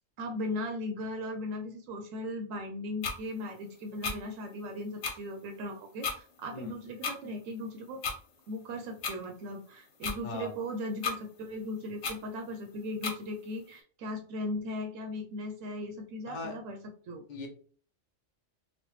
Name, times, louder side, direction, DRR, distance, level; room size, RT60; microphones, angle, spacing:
voice 1, 0.2-8.0 8.5-16.8 17.1-17.2, left 1 dB, 85° right, 4 dB, 1.0 m, -38 dB
sound 1, 3.0-3.2 4.0-4.2 5.0-5.1 6.0-6.2 7.0-7.2 8.0-8.2 9.0-9.1 10.0-10.2 11.0-11.2 12.0-12.2 13.0-13.2, left 5 dB, 85° left, 1.1 m, -32 dB
voice 2, 6.5-6.7 10.2-10.5 16.3-16.6 17.3-17.5, left 3 dB, 45° left, 2 dB, 0.7 m, -39 dB
3.1 x 2.2 x 3.0 m, 0.43 s
omnidirectional pair, 1.3 m